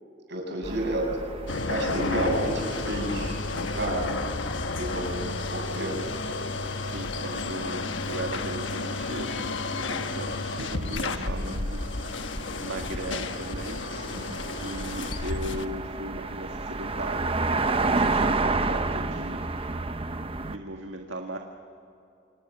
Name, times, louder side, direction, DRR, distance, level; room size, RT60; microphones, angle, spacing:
voice 1, 0.3-1.1 1.6-4.0 4.8-6.0 7.7-7.9 11.1-11.4 14.1-14.2, right 1 dB, 65° right, 0 dB, 7.8 m, -31 dB
sound 1, 0.6-20.6, right 3 dB, 30° right, 0.9 m, -33 dB
sound 2, 1.5-15.7, left 3 dB, 75° left, 1.3 m, -32 dB
voice 2, 2.2-2.5 6.8-13.8 14.1-19.8 20.5-21.4, right 1 dB, 90° right, 2 dB, 1.7 m, -38 dB
29.0 x 26.5 x 7.3 m, 2.6 s
head